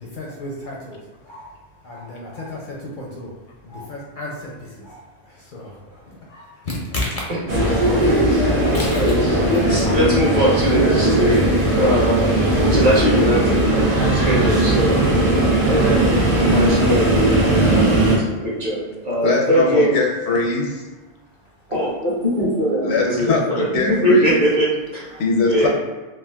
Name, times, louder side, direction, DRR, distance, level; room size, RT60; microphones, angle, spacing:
voice 1, 0.0-3.4 3.6-7.3 7.9-9.1 12.7-12.8 21.8-21.9 25.1-25.2, left 1 dB, 60° left, -3 dB, 0.6 m, -33 dB
sound 1, 7.5-18.2, right 1 dB, 80° right, 1.1 m, -18 dB
voice 2, 8.9-11.5 11.8-12.3 12.6-15.0 15.5-20.0 21.7-25.2 25.4-25.7, equal, 40° right, -7 dB, 1.0 m, -21 dB
voice 3, 19.2-20.9 22.8-24.4 25.2-25.7, left 4 dB, 80° left, 0 dB, 0.9 m, -22 dB
3.5 x 2.4 x 2.2 m, 1.2 s
omnidirectional pair, 1.1 m